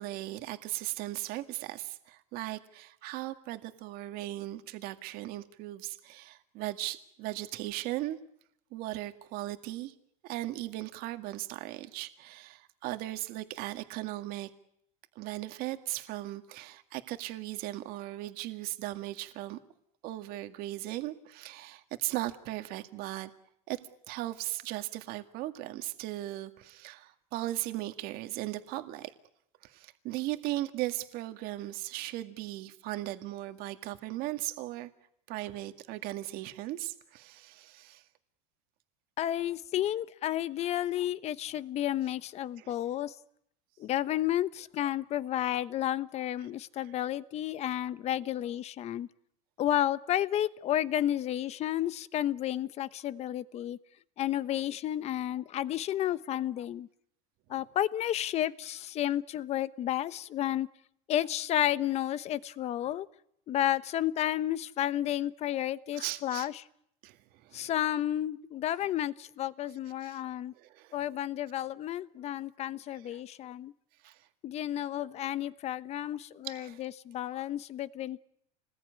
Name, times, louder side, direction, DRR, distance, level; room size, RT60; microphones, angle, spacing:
voice 1, 0.0-8.2 8.7-9.9 10.2-14.5 15.2-19.6 20.0-23.3 23.7-23.8 24.1-29.1 29.6-34.9 35.3-38.0 42.6-42.7 46.8-46.9 65.9-66.5 67.0-67.7 70.0-70.2 70.6-71.0 72.9-73.2 74.0-74.3 76.4-76.8, right 16 dB, 50° right, 8 dB, 2.1 m, -37 dB
voice 2, 39.2-43.1 43.8-49.1 49.6-53.8 54.2-56.9 57.5-60.7 61.1-63.1 63.5-66.5 67.5-70.5 70.9-73.7 74.4-78.2, left 12 dB, 35° left, 16 dB, 1.0 m, -31 dB
29.0 x 20.5 x 9.6 m, 0.73 s
supercardioid pair, 140°, 19 cm